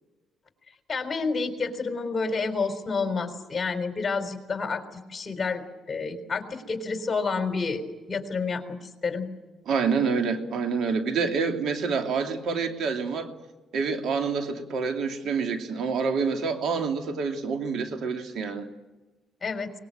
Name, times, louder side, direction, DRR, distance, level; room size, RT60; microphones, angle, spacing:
voice 1, 0.9-4.8 5.1-9.3 19.4-19.7, left 4 dB, 35° left, 7 dB, 3.8 m, -29 dB
voice 2, 9.7-13.3 13.7-18.7, right 5 dB, 70° right, 5 dB, 2.9 m, -27 dB
24.0 x 20.5 x 8.9 m, 1.2 s
cardioid pair, 90°, 0 cm